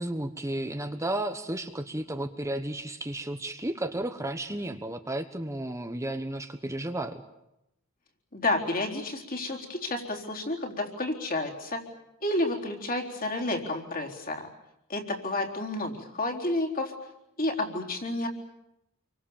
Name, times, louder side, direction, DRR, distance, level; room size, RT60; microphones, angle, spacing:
voice 1, 0.0-7.2, right 1 dB, 15° right, 6 dB, 1.1 m, -33 dB
voice 2, 8.3-11.8 12.2-14.5 14.9-16.9 17.4-18.3, left 2 dB, 45° left, 0 dB, 4.1 m, -30 dB
29.0 x 24.0 x 7.3 m, 0.86 s
head